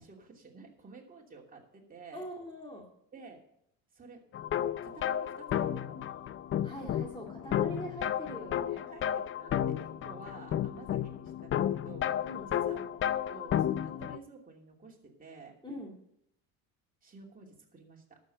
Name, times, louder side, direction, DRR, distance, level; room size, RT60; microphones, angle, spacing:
voice 1, 0.0-2.3 3.1-3.4 3.9-4.2 4.8-6.1 8.8-12.2 12.5-15.6 17.0-18.2, right 4 dB, 20° right, 0 dB, 2.8 m, -51 dB
voice 2, 2.1-2.9 6.6-8.8 12.2-12.5 15.6-16.0, equal, 15° left, -1 dB, 2.4 m, -43 dB
sound 1, 4.3-14.2, left 10 dB, 35° left, 0.5 m, -32 dB
11.5 x 7.6 x 6.8 m, 0.74 s
cardioid pair, 125°, 37 cm